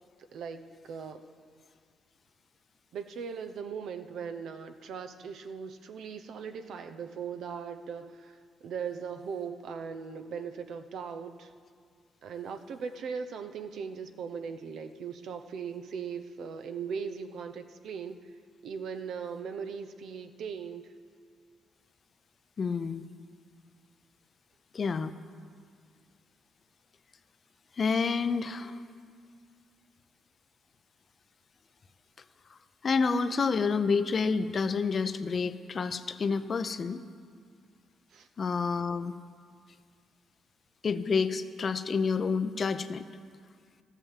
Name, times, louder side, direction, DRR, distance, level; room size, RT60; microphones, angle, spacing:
voice 1, 0.3-1.2 2.9-11.5 12.2-20.9 38.1-38.3, right 6 dB, 70° right, 8 dB, 0.8 m, -39 dB
voice 2, 22.6-23.1 24.7-25.1 27.8-28.8 32.8-37.0 38.4-39.2 40.8-43.0, left 5 dB, 45° left, 11 dB, 0.6 m, -29 dB
13.5 x 8.2 x 7.5 m, 2.1 s
cardioid pair, 90°, 0 cm